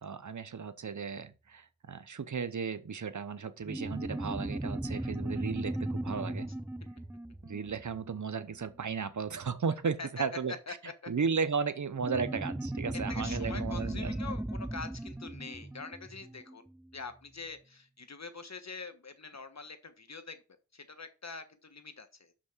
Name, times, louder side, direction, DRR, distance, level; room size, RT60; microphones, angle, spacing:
voice 1, 0.0-6.5 7.4-10.6 11.1-14.1, right 5 dB, 90° right, 0.8 m, -35 dB
sound 1, 3.7-8.6 12.0-16.9, right 1 dB, 5° right, 0.5 m, -37 dB
voice 2, 10.7-11.1 12.9-16.6 16.9-20.4 20.7-22.3, left 4 dB, 65° left, 1.4 m, -45 dB
6.4 x 6.2 x 6.1 m
wide cardioid pair, 40°, 29 cm